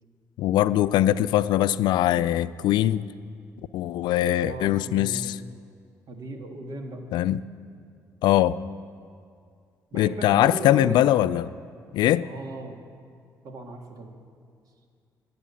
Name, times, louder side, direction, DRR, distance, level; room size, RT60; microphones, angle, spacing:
voice 1, 0.4-3.1 3.7-5.4 7.1-7.4 8.2-8.6 9.9-11.5 11.9-12.3, left 13 dB, 80° left, 0.3 m, -22 dB
voice 2, 4.4-5.3 6.1-7.1 9.9-11.0 12.2-12.8 13.4-14.2, right 2 dB, 60° right, 1.8 m, -37 dB
11.0 x 9.2 x 8.5 m
cardioid pair, 80°, 7 cm